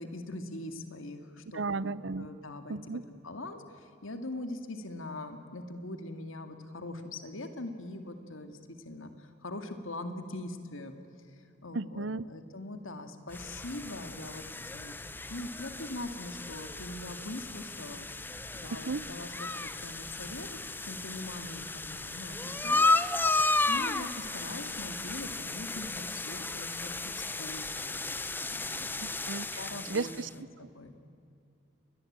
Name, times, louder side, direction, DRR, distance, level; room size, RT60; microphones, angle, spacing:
voice 1, 0.0-10.9 11.3-14.4 14.7-15.0 15.3-18.1 18.5-20.5 20.8-22.9 23.7-28.0 28.5-28.9 29.6-30.1 30.4-30.9, left 2 dB, 80° left, 7 dB, 2.2 m, -42 dB
voice 2, 1.5-2.3 2.7-3.0 11.7-12.3 18.9-19.0 29.0-29.5 29.9-30.3, right 3 dB, 65° right, 19 dB, 0.7 m, -34 dB
sound 1, 13.3-30.3, left 3 dB, 10° left, 0.8 m, -34 dB
29.5 x 22.5 x 8.8 m, 2.5 s
head